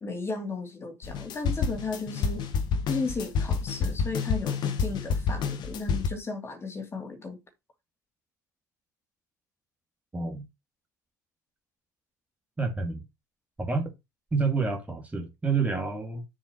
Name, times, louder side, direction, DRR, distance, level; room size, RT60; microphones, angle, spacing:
voice 1, 0.0-2.4 2.9-7.4, left 4 dB, 25° left, 2.6 m, -34 dB
sound 1, 1.0-6.1, left 5 dB, 50° left, 1.5 m, -28 dB
voice 2, 10.1-10.4 12.6-13.0 13.6-13.9 14.3-16.2, right 4 dB, 15° right, 2.3 m, -28 dB
7.1 x 7.1 x 3.1 m
figure-of-eight pair, 65°, 10 cm